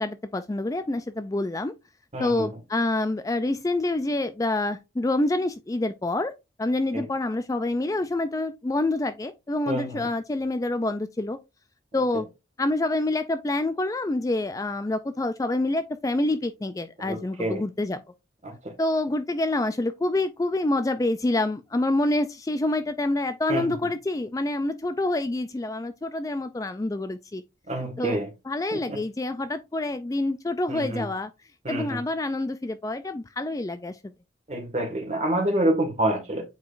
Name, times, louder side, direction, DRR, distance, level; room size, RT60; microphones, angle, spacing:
voice 1, 0.0-1.7 2.2-6.3 6.6-11.4 11.9-12.3 12.6-18.0 18.8-27.4 27.8-28.2 28.5-31.3 31.7-34.0, left 2 dB, 20° left, 0.3 m, -27 dB
voice 2, 2.1-2.5 6.9-7.0 9.7-10.0 17.0-17.6 18.4-18.7 23.5-23.7 27.7-28.3 28.7-29.0 30.7-31.1 31.6-32.0 34.5-36.4, right 1 dB, 35° right, 1.7 m, -27 dB
8.1 x 4.7 x 2.5 m
head